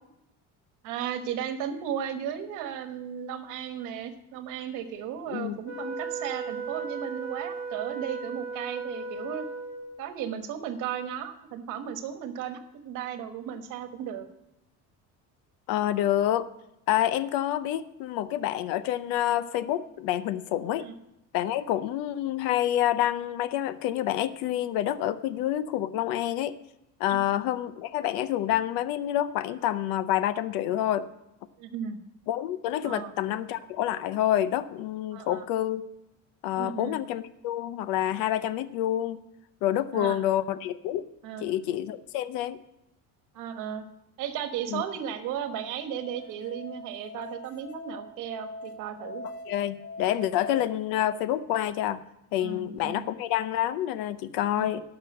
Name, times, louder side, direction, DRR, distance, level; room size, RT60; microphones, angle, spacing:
voice 1, 0.8-9.5 10.0-14.3 20.8-20.9 27.1-27.2 31.6-32.0 32.8-33.1 35.1-35.4 36.6-37.0 39.9-40.2 41.2-41.5 43.3-43.8 44.2-49.2 52.4-53.1 54.6-54.7, right 9 dB, 65° right, 9 dB, 1.3 m, -35 dB
voice 2, 5.3-5.6 15.7-16.5 16.9-20.9 21.3-26.6 27.0-31.1 32.3-35.8 36.4-39.2 39.6-41.1 41.4-42.6 44.7-44.8 49.5-52.0 52.3-54.8, left 12 dB, 90° left, 15 dB, 0.7 m, -28 dB
Wind instrument woodwind instrument, 5.6-10.0, right 4 dB, 35° left, 2.3 m, -36 dB
Musical instrument, 45.0-50.7, left 2 dB, 60° left, 1.2 m, -42 dB
12.0 x 5.9 x 7.7 m, 0.88 s
cardioid pair, 170°, 33 cm